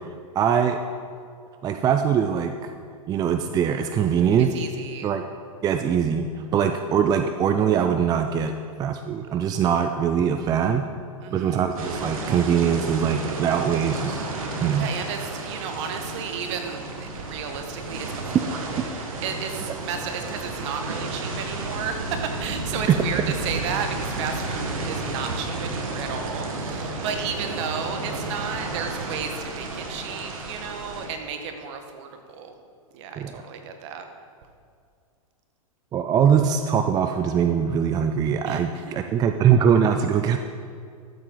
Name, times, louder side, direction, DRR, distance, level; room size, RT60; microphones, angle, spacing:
voice 1, 0.3-0.8 1.6-2.5 3.1-4.5 5.0-5.2 5.6-6.3 6.5-10.8 11.3-14.3 14.6-14.9 33.2-33.4 35.9-40.4, right 8 dB, 20° right, 7 dB, 0.4 m, -22 dB
voice 2, 4.5-5.1 11.2-11.7 14.8-18.6 19.2-32.5 32.9-34.0 38.4-38.9, right 6 dB, 55° right, 5 dB, 1.4 m, -33 dB
sound 1, 11.8-31.1, right 2 dB, 70° right, 1.7 m, -32 dB
13.5 x 7.8 x 4.0 m, 2.2 s
hypercardioid pair, 115°, 18 cm